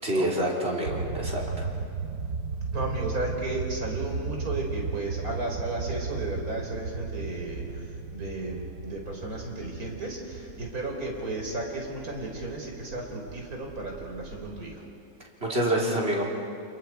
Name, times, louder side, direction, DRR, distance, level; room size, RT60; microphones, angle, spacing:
voice 1, 0.0-1.7 15.4-16.2, right 1 dB, 45° right, -2 dB, 4.0 m, -27 dB
sound 1, 0.9-14.8, right 4 dB, 70° right, 1.4 m, -36 dB
voice 2, 2.7-14.8, right 2 dB, 85° right, 0 dB, 4.6 m, -34 dB
29.0 x 29.0 x 4.7 m, 2.4 s
omnidirectional pair, 1.5 m